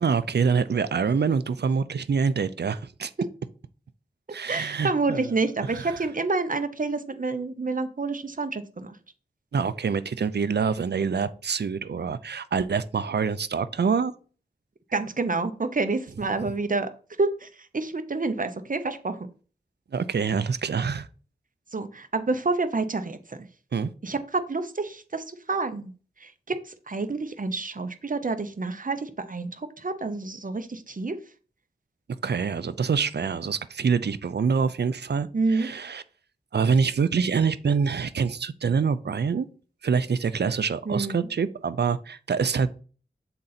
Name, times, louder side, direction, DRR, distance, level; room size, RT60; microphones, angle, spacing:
voice 1, 0.0-3.1 4.3-5.2 5.6-6.0 9.5-14.2 19.9-21.1 23.7-23.9 32.2-36.0 36.5-39.5 39.8-42.7, right 5 dB, 75° right, 0.5 m, -25 dB
voice 2, 4.5-8.9 14.9-16.9 17.2-17.5 17.7-19.2 21.7-23.5 24.0-25.9 26.2-26.5 26.9-29.5 29.8-31.1 35.3-35.7 40.9-41.3, right 3 dB, 50° right, 0.8 m, -28 dB
7.2 x 3.8 x 4.1 m
wide cardioid pair, 50°, 17 cm